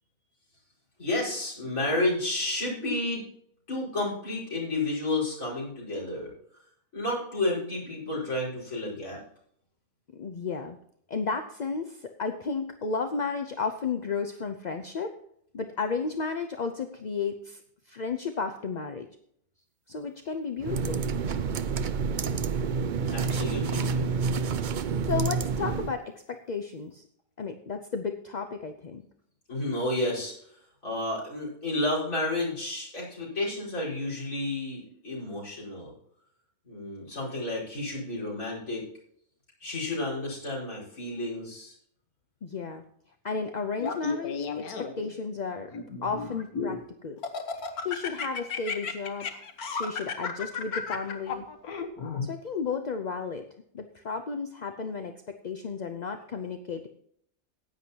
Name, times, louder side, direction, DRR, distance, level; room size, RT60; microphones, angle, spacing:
voice 1, 1.0-3.2 3.7-6.3 6.9-9.2 22.9-24.3 29.5-30.3 30.8-35.9 36.7-38.8 39.6-41.7, left 2 dB, 65° left, -5 dB, 5.4 m, -31 dB
voice 2, 10.2-10.8 11.1-15.1 15.5-17.6 17.9-19.1 19.9-21.0 25.1-27.0 27.4-29.1 42.4-42.8 43.2-45.7 46.0-47.2 47.8-49.4 49.7-51.5 52.2-53.4 53.7-56.9, left 5 dB, 45° left, 5 dB, 0.5 m, -33 dB
sound 1, 20.6-26.0, right 5 dB, 70° right, 0.4 m, -28 dB
Laughter, 43.8-45.1 45.7-46.8 47.2-52.3, left 5 dB, 85° left, 1.6 m, -33 dB
15.5 x 9.7 x 2.9 m, 0.67 s
omnidirectional pair, 1.5 m